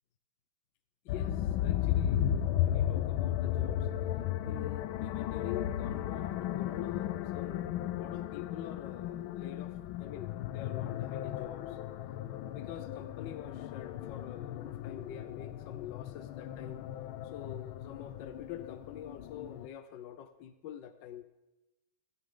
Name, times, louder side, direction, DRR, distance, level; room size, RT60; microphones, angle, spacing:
voice 1, 1.0-3.9 4.4-11.8 12.5-16.8 17.2-21.2, left 10 dB, 70° left, 10 dB, 1.2 m, -46 dB
sound 1, 1.1-19.7, left 11 dB, 90° left, 1.5 m, -35 dB
16.0 x 15.5 x 3.7 m, 1.0 s
omnidirectional pair, 2.2 m